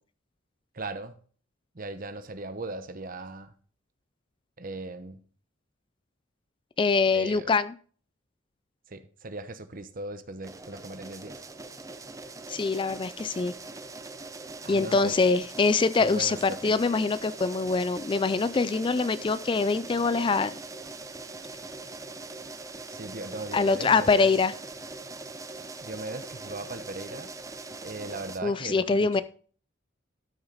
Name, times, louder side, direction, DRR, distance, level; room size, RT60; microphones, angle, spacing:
voice 1, 0.7-1.2 1.7-3.5 4.6-5.2 7.1-7.5 8.9-11.4 14.6-15.2 16.0-16.7 22.9-24.3 25.8-27.3 27.8-29.2, right 2 dB, 45° right, 11 dB, 1.0 m, -38 dB
voice 2, 6.8-7.7 12.5-13.5 14.7-20.6 23.5-24.5 28.4-29.2, left 4 dB, 25° left, 16 dB, 0.3 m, -24 dB
sound 1, 10.4-28.4, right 3 dB, 15° right, 0.6 m, -42 dB
13.0 x 6.3 x 4.0 m, 0.44 s
head